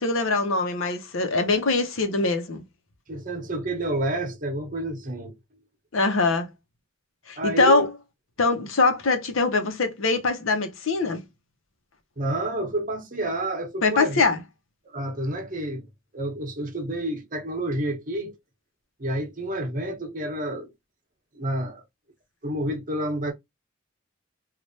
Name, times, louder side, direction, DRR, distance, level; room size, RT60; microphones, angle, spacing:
voice 1, 0.0-2.6 5.9-6.5 7.3-7.9 8.4-11.2 13.8-14.4, left 3 dB, 90° left, 0.8 m, -23 dB
voice 2, 3.1-5.3 7.4-7.8 12.2-14.2 14.9-15.9 16.1-18.3 19.0-20.7 21.3-21.8 22.4-23.3, right 1 dB, 40° right, 0.9 m, -29 dB
3.2 x 2.5 x 2.5 m
head